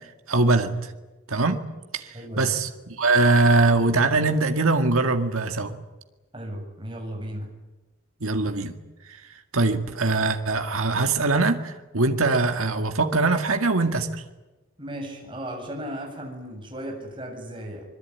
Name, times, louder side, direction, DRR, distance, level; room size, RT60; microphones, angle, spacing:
voice 1, 0.3-0.9 1.3-1.6 1.9-5.7 8.2-8.8 9.1-14.2, right 3 dB, 80° right, 6 dB, 2.0 m, -22 dB
voice 2, 2.1-2.5 6.3-7.5 14.8-17.8, equal, 20° right, 1 dB, 7.4 m, -35 dB
25.5 x 22.5 x 9.4 m, 1.1 s
head